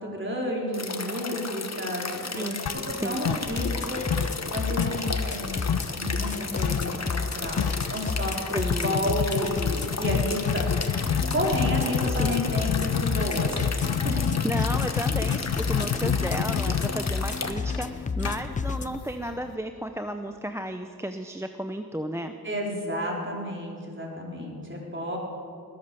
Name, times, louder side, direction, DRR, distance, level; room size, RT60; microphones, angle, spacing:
voice 1, 0.0-7.6 7.9-13.6 14.0-14.2 15.8-15.9 22.4-25.2, equal, 30° right, -2 dB, 4.1 m, -31 dB
sound 1, 0.7-17.5, left 4 dB, 45° left, 1.2 m, -34 dB
sound 2, 2.7-3.8 4.1-6.0 6.6-6.9 7.2-7.3 7.6-7.9 8.7-19.5, left 8 dB, 85° left, 0.7 m, -29 dB
sound 3, 3.4-19.0, left 4 dB, 20° left, 0.3 m, -31 dB
voice 2, 8.5-9.2 12.2-12.4 14.4-22.4, equal, 5° right, 7 dB, 0.7 m, -33 dB
20.0 x 8.7 x 6.9 m, 2.5 s
cardioid pair, 45°, 38 cm